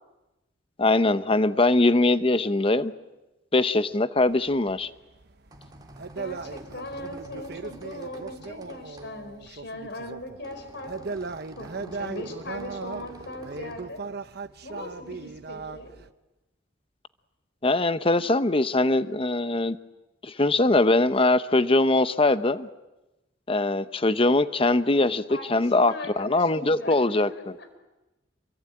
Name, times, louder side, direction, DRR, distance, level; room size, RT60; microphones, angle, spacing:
voice 1, 0.8-2.9 3.5-4.9 17.6-19.8 20.2-22.7 23.5-27.3, left 2 dB, 30° left, 12 dB, 0.9 m, -22 dB
sound 1, 4.3-10.4 10.7-16.1, right 4 dB, 55° right, 1.0 m, -38 dB
sound 2, 5.2-13.9, right 1 dB, 20° right, 2.1 m, -48 dB
voice 2, 6.1-11.2 11.5-14.0 14.6-15.9 25.3-27.8, left 1 dB, 60° left, 8 dB, 4.7 m, -39 dB
27.5 x 23.0 x 9.0 m, 1.0 s
head